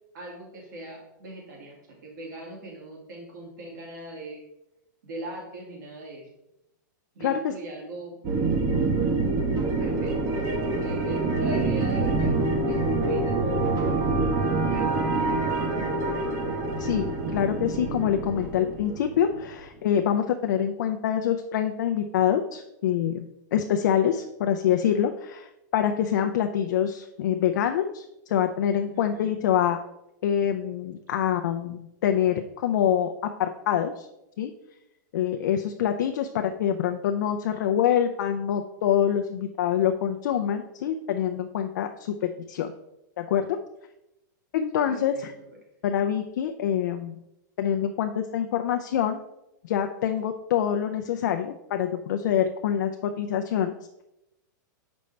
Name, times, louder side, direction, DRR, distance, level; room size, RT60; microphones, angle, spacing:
voice 1, 0.1-4.4 5.0-6.3 7.1-8.2 9.6-14.0 14.4-15.6 28.9-29.3 44.9-45.2, right 1 dB, 70° right, -1 dB, 2.2 m, -40 dB
voice 2, 7.2-7.5 16.8-29.8 30.2-34.1 34.4-34.5 35.1-42.7 43.2-43.6 44.5-45.3 45.8-47.2 47.6-49.2 49.6-53.7, left 9 dB, 65° left, 5 dB, 0.5 m, -25 dB
sound 1, 8.2-19.6, right 3 dB, 30° right, 0.9 m, -26 dB
6.7 x 5.2 x 3.2 m, 0.88 s
supercardioid pair, 155°, 10 cm